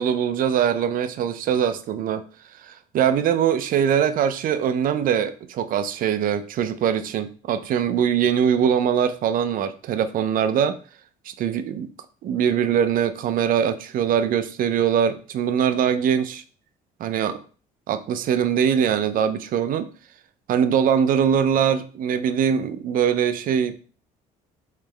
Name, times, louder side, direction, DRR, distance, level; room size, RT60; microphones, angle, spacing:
voice 1, 0.0-2.3 2.6-10.8 11.4-11.9 12.2-16.4 17.0-17.4 17.9-19.9 20.5-23.8, right 8 dB, 55° right, 0.5 m, -22 dB
3.5 x 3.2 x 3.3 m
cardioid pair, 110°, 17 cm